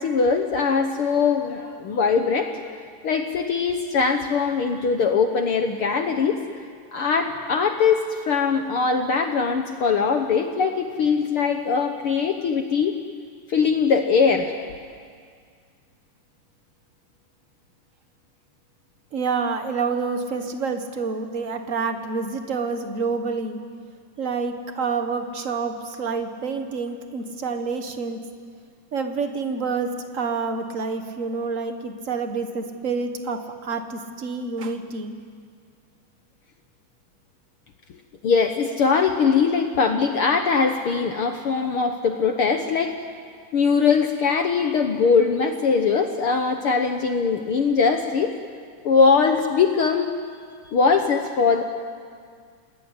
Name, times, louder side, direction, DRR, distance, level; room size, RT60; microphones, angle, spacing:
voice 1, 0.0-6.4 6.9-13.0 13.5-14.6 38.2-43.0 43.5-48.3 48.8-50.1 50.7-51.6, left 5 dB, 60° left, 5 dB, 1.5 m, -21 dB
voice 2, 19.1-23.6 24.2-28.2 28.9-35.1, right 4 dB, 40° right, 6 dB, 1.2 m, -28 dB
28.0 x 19.0 x 9.8 m, 2.1 s
omnidirectional pair, 3.6 m